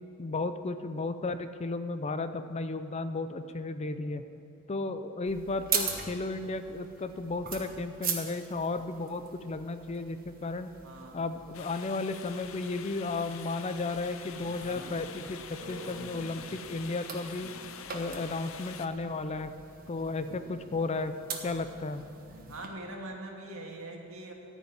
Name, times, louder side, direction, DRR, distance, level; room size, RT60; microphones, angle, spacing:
voice 1, 0.2-4.2 4.7-10.7 11.1-17.5 17.9-19.5 19.9-21.1 21.4-22.0, left 3 dB, 30° left, 10 dB, 0.4 m, -34 dB
sound 1, 5.3-22.7, right 6 dB, 45° right, 1.3 m, -41 dB
voice 2, 10.8-11.2 22.5-24.3, right 1 dB, 75° right, 1 dB, 1.8 m, -42 dB
sound 2, 11.5-18.9, left 7 dB, 70° left, 0.7 m, -46 dB
14.0 x 5.4 x 9.4 m, 2.8 s
head